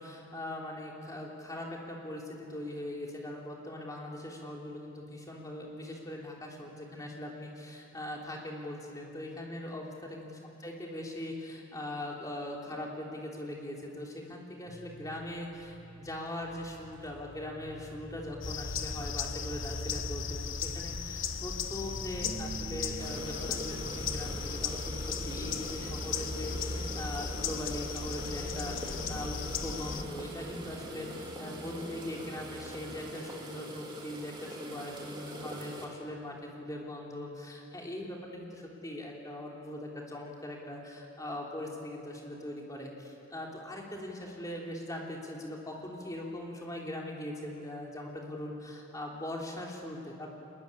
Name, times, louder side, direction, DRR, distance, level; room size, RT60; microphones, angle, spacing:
voice 1, 0.0-10.3 10.6-50.3, left 1 dB, 15° left, -1 dB, 3.4 m, -41 dB
sound 1, 14.7-33.1, right 1 dB, 45° right, 3.4 m, -48 dB
sound 2, 18.4-30.0, left 5 dB, 60° left, 1.1 m, -36 dB
sound 3, 23.0-35.9, right 1 dB, 20° right, 2.9 m, -44 dB
23.0 x 20.5 x 10.0 m, 2.7 s
head